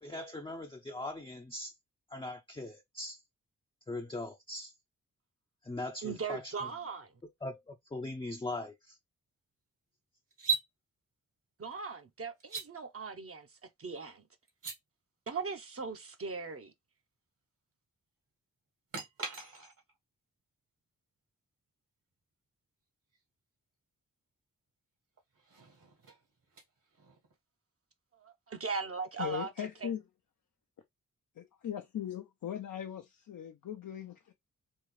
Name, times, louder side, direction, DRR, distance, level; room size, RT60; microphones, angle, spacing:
voice 1, 0.0-1.7 2.1-3.2 3.9-4.7 5.6-6.7 7.4-9.0, left 2 dB, 15° left, 0.6 m, -40 dB
voice 2, 6.0-7.1 11.6-13.5 13.8-14.2 15.3-16.7 28.1-29.5 29.8-29.9, right 5 dB, 40° right, 0.8 m, -39 dB
sound 1, 10.3-10.7 12.4-12.7 14.5-14.8 18.9-19.9 23.1-23.2 25.2-27.3, right 5 dB, 65° right, 1.8 m, -38 dB
voice 3, 29.2-30.0 31.4-34.3, left 9 dB, 65° left, 0.7 m, -39 dB
3.7 x 2.4 x 3.2 m
cardioid pair, 45°, 34 cm